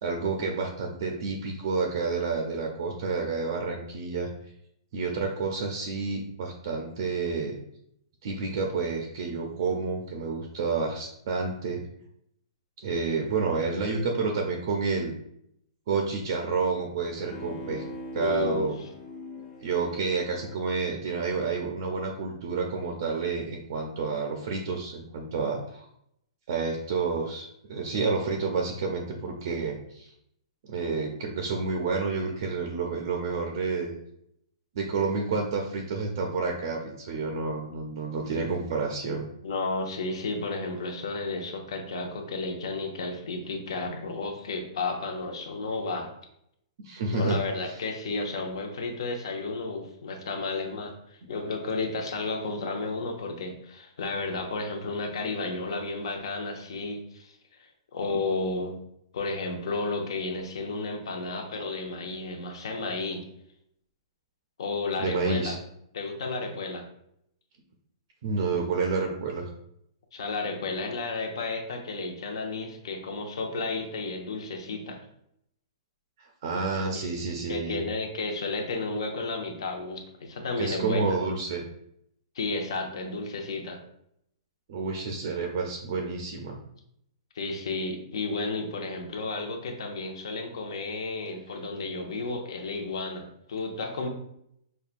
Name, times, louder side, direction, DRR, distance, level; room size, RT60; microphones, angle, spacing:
voice 1, 0.0-4.3 4.9-7.6 8.2-11.8 12.8-15.1 15.9-17.8 18.1-18.8 19.6-25.9 26.5-30.1 30.6-34.0 34.7-39.3 46.8-47.4 65.0-65.6 68.2-69.5 76.2-77.8 80.6-81.6 84.7-86.6, right 4 dB, 50° right, 2 dB, 0.5 m, -29 dB
Bowed string instrument, 17.2-21.8 22.2-22.3, left 1 dB, 20° left, 0.5 m, -43 dB
voice 2, 18.2-18.7 39.4-46.1 47.1-58.8 59.1-63.3 64.6-65.6 65.9-66.9 70.1-75.0 76.9-77.1 77.5-81.2 82.3-83.8 87.3-94.1, left 3 dB, 65° left, 3 dB, 0.7 m, -32 dB
5.3 x 2.2 x 2.5 m, 0.74 s
hypercardioid pair, 170°, 3 cm